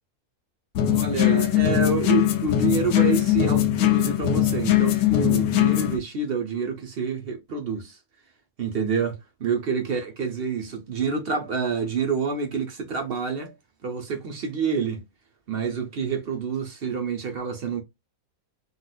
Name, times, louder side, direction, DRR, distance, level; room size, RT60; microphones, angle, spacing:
sound 1, 0.7-6.0, left 12 dB, 80° left, 1.1 m, -21 dB
voice 1, 0.8-8.0 8.6-13.5 13.8-15.0 15.5-17.8, right 5 dB, 50° right, 0.9 m, -28 dB
3.9 x 2.4 x 2.3 m
omnidirectional pair, 1.5 m